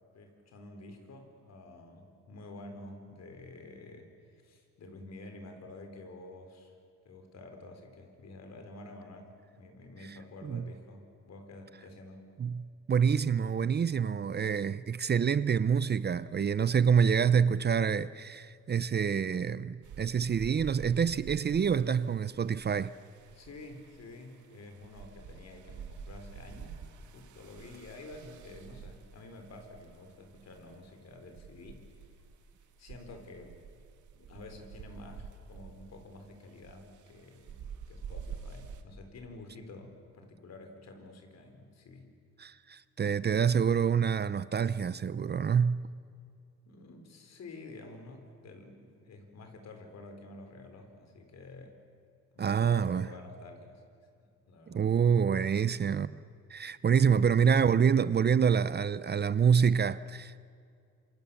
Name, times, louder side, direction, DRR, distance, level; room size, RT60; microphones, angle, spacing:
voice 1, 0.1-4.1 4.4-6.7 7.0-12.3 23.3-31.9 32.8-33.6 34.1-42.1 46.7-51.8 52.3-53.8 54.2-55.7 57.2-57.3, left 2 dB, 60° left, 4.5 m, -49 dB
voice 2, 12.9-22.9 42.4-45.8 52.4-53.1 54.7-56.1 56.5-60.4, right 7 dB, 35° right, 0.6 m, -27 dB
sound 1, 19.8-38.8, right 6 dB, 75° right, 2.0 m, -48 dB
27.0 x 25.5 x 7.1 m
cardioid pair, 90°, 30 cm